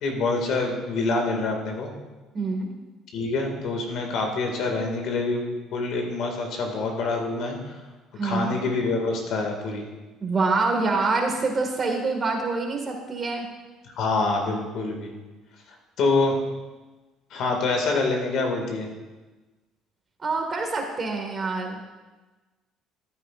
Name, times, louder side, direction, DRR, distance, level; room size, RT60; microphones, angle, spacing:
voice 1, 0.0-1.9 3.1-7.7 8.2-9.9 14.0-15.1 16.0-16.4 17.3-18.9, left 3 dB, 65° left, 2 dB, 2.1 m, -26 dB
voice 2, 2.3-2.7 8.2-8.6 10.2-13.5 20.2-21.8, right 3 dB, 30° right, 1 dB, 1.8 m, -26 dB
14.0 x 9.1 x 2.5 m, 1.2 s
cardioid pair, 115°, 0 cm